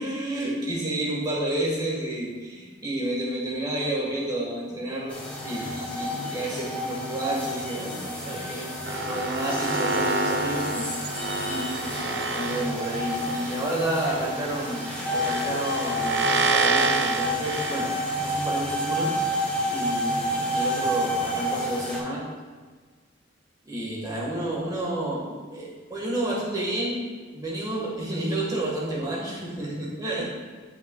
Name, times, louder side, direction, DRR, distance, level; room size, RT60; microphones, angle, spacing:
voice 1, 0.0-8.7 9.0-11.1 11.4-12.0 12.2-17.9 18.2-19.2 19.7-22.2 23.6-27.0 27.3-30.2, right 1 dB, 20° right, -4 dB, 1.4 m, -30 dB
sound 1, 5.1-22.0, equal, 5° left, 1.7 m, -30 dB
sound 2, 8.9-18.4, right 3 dB, 60° right, 0.6 m, -29 dB
11.5 x 5.8 x 2.2 m, 1.5 s
head